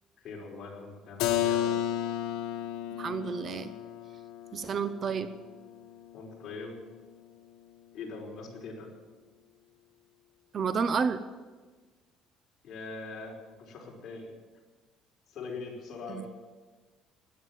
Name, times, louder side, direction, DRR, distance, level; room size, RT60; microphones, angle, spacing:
voice 1, 0.2-1.8 6.1-6.8 7.9-8.9 12.6-14.3 15.3-16.3, left 4 dB, 45° left, -2 dB, 5.1 m, -42 dB
Keyboard (musical), 1.2-6.8, left 11 dB, 90° left, 1.3 m, -33 dB
voice 2, 3.0-3.7 4.5-5.3 10.5-11.2 16.1-16.3, right 6 dB, 35° right, 12 dB, 0.7 m, -30 dB
17.0 x 11.5 x 7.4 m, 1.3 s
cardioid pair, 145°, 0 cm